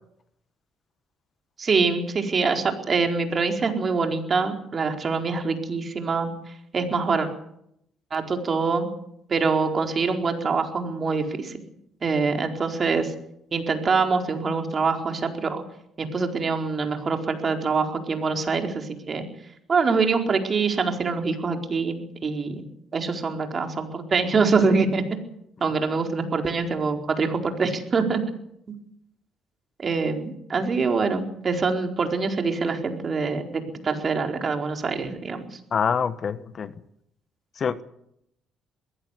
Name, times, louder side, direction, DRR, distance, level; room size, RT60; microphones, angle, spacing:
voice 1, 1.6-6.3 6.7-7.3 8.1-8.9 9.3-11.6 12.0-13.1 13.5-15.6 16.0-19.3 19.7-22.6 22.9-25.0 25.6-28.2 28.7-28.8 29.8-35.5, right 4 dB, 40° right, 4.4 m, -24 dB
voice 2, 35.7-36.7 37.6-37.8, left 6 dB, 50° left, 1.2 m, -25 dB
22.0 x 16.5 x 8.4 m
supercardioid pair, 75°, 0 cm